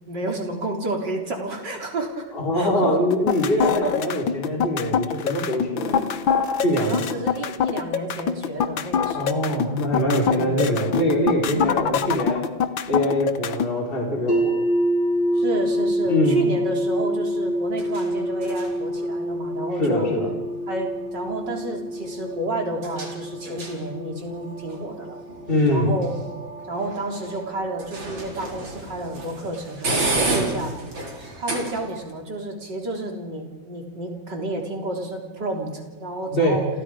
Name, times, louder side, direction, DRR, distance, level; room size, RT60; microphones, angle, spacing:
voice 1, 0.1-2.3 2.5-3.0 3.6-3.9 5.7-6.2 6.8-9.5 10.2-10.6 11.5-11.9 15.4-20.1 20.7-25.2 25.7-26.1 26.7-30.7 31.4-36.7, right 1 dB, 65° right, 1 dB, 4.2 m, -30 dB
voice 2, 2.3-5.9 6.6-7.0 9.1-12.4 12.9-14.6 16.1-16.4 19.8-20.3 25.5-25.9 36.3-36.6, left 1 dB, 30° left, -1 dB, 3.9 m, -23 dB
sound 1, 3.1-13.7, left 7 dB, 85° left, 1.9 m, -24 dB
sound 2, 14.3-26.2, equal, 65° left, 7.2 m, -27 dB
sound 3, 14.7-32.1, right 2 dB, 80° right, 4.6 m, -34 dB
29.5 x 26.5 x 5.0 m, 1.2 s
omnidirectional pair, 2.1 m